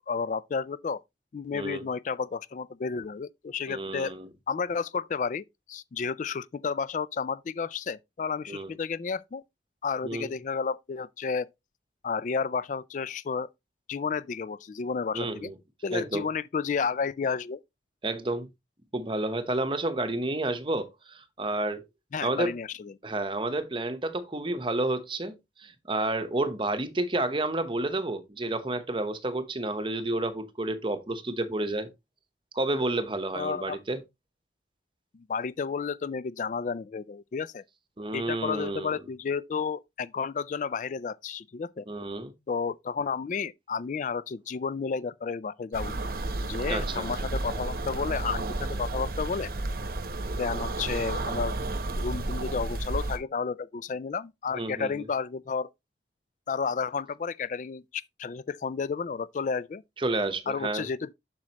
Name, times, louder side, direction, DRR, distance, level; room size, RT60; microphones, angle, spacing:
voice 1, 0.1-1.0 1.3-4.1 4.5-9.4 9.8-11.5 12.0-13.5 13.9-15.5 15.8-17.6 22.1-22.9 33.3-33.8 35.1-37.6 38.1-41.9 42.5-46.0 46.4-49.5 50.4-51.5 52.0-55.7 56.5-59.8 60.5-61.1, left 5 dB, 45° left, 0.3 m, -32 dB
voice 2, 1.5-1.8 3.7-4.3 8.5-8.7 10.0-10.3 15.1-15.5 15.9-16.3 18.0-18.5 18.9-21.8 22.2-22.5 23.0-31.9 32.5-34.0 38.0-38.9 41.9-42.3 46.7-47.1 54.5-54.9 60.0-60.9, right 2 dB, 25° right, 0.8 m, -30 dB
sound 1, 45.7-53.2, right 2 dB, 50° right, 0.9 m, -32 dB
7.5 x 6.3 x 2.9 m
head